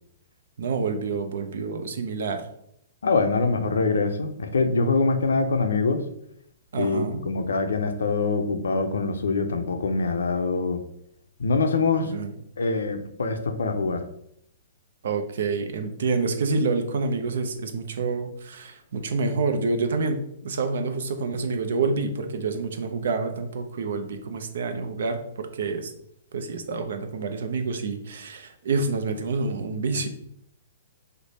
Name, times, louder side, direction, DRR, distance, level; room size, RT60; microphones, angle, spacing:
voice 1, 0.6-2.4 6.7-7.2 12.1-12.3 15.0-25.9 26.3-30.1, right 4 dB, 70° right, 6 dB, 0.5 m, -28 dB
voice 2, 3.0-6.0 6.8-10.8 11.4-12.1 12.6-14.0, left 4 dB, 85° left, 7 dB, 0.4 m, -24 dB
3.2 x 2.1 x 4.0 m, 0.73 s
hypercardioid pair, 135°, 0 cm